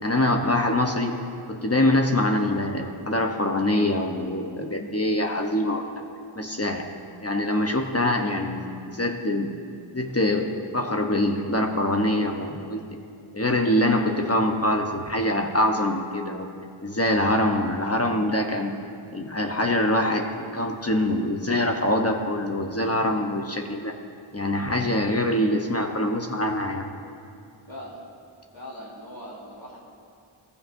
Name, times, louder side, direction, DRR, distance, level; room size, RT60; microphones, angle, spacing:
voice 1, 0.0-6.0 6.3-6.9 7.2-9.5 9.9-12.9 13.3-16.5 16.8-18.8 19.1-24.0 24.3-26.9, left 1 dB, 30° left, 2 dB, 0.9 m, -24 dB
voice 2, 27.7-28.0 28.5-29.8, equal, 65° left, -4 dB, 3.2 m, -40 dB
17.5 x 15.0 x 2.6 m, 2.5 s
wide cardioid pair, 55°, 49 cm